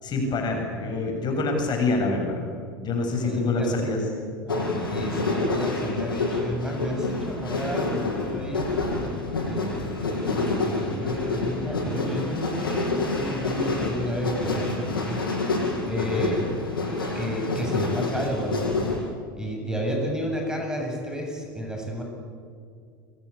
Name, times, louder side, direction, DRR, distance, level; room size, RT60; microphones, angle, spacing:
voice 1, 0.0-2.4 2.8-4.1 16.0-16.3, left 3 dB, 40° left, 2 dB, 7.8 m, -26 dB
voice 2, 3.2-3.8 4.5-8.7 9.5-9.8 10.3-15.2 15.9-16.5 17.1-18.8 19.4-22.0, equal, 5° right, 1 dB, 7.4 m, -31 dB
sound 1, 4.5-19.0, left 3 dB, 90° left, 7.9 m, -28 dB
29.5 x 24.0 x 8.6 m, 2.3 s
hypercardioid pair, 85°, 11 cm